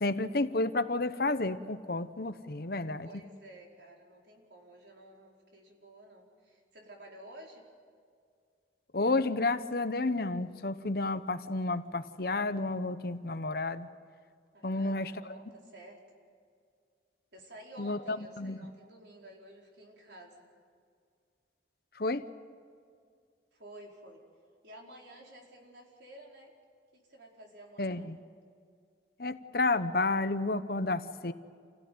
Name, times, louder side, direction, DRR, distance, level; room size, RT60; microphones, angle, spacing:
voice 1, 0.0-3.1 8.9-13.9 14.6-15.1 17.8-18.6 22.0-22.2 27.8-28.2 29.2-31.3, left 2 dB, 55° left, 11 dB, 0.9 m, -31 dB
voice 2, 3.0-7.7 14.5-16.0 17.3-20.5 23.5-24.2 24.6-26.5 26.9-28.1, right 1 dB, 70° right, -1 dB, 4.8 m, -52 dB
28.5 x 16.5 x 9.5 m, 2.2 s
head